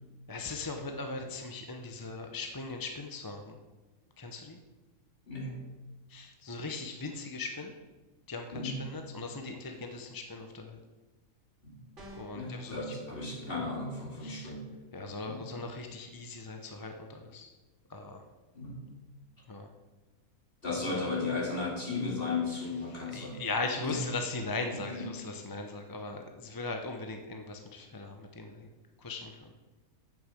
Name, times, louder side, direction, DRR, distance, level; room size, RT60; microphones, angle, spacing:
voice 1, 0.3-3.6 4.2-4.6 6.1-7.7 8.3-10.8 12.2-12.8 14.2-14.5 14.9-17.5 17.9-18.2 19.5-19.7 20.7-21.0 22.9-28.7 29.0-29.5, left 3 dB, 20° left, 4 dB, 0.6 m, -39 dB
voice 2, 5.3-5.6 8.5-8.8 11.6-11.8 12.3-14.7 15.2-15.4 18.5-18.8 20.6-23.4 23.8-24.0 24.7-25.1, left 3 dB, 40° left, -1 dB, 2.5 m, -35 dB
sound 1, 12.0-12.5, equal, 55° right, 3.1 m, -48 dB
8.7 x 6.7 x 7.7 m, 1.2 s
omnidirectional pair, 1.5 m